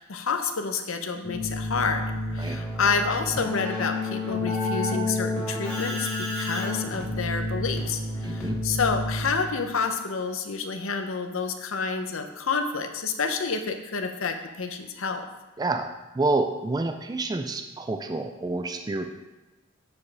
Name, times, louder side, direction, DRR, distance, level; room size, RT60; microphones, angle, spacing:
voice 1, 0.0-2.0 2.3-15.2, left 5 dB, 70° left, 6 dB, 0.7 m, -29 dB
Keyboard (musical), 1.2-9.6, left 2 dB, 5° left, 1.8 m, -30 dB
voice 2, 8.2-8.6 15.6-15.9 16.1-19.1, right 2 dB, 20° right, 6 dB, 0.3 m, -28 dB
8.2 x 5.0 x 4.7 m, 1.1 s
head